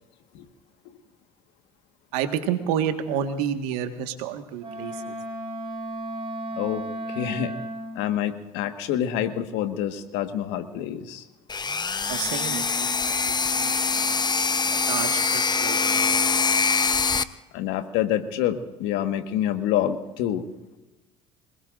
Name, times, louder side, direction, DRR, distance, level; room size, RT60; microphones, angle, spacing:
voice 1, 2.1-5.1 12.1-14.2 14.7-16.2, right 9 dB, 80° right, 6 dB, 1.7 m, -30 dB
Wind instrument woodwind instrument, 4.6-8.0, right 1 dB, 30° right, 5.6 m, -34 dB
voice 2, 7.1-7.5 7.9-11.2 17.5-20.4, left 11 dB, 70° left, 8 dB, 1.6 m, -27 dB
sound 1, 11.5-17.2, left 5 dB, 20° left, 0.8 m, -24 dB
26.0 x 20.0 x 2.6 m, 1.1 s
hypercardioid pair, 70°, 19 cm